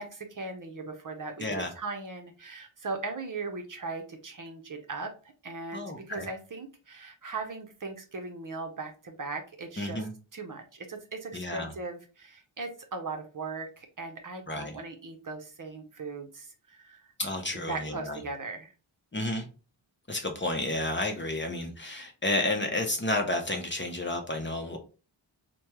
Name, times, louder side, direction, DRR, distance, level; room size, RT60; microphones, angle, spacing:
voice 1, 0.0-10.0 10.3-17.1 17.5-18.7, right 3 dB, 40° right, 4 dB, 0.8 m, -39 dB
voice 2, 1.4-1.7 5.7-6.3 9.8-10.1 11.3-11.7 14.5-14.8 17.2-18.2 19.1-19.5 20.1-24.8, left 2 dB, 25° left, 3 dB, 0.7 m, -31 dB
3.3 x 2.2 x 2.9 m, 0.34 s
cardioid pair, 55°, 48 cm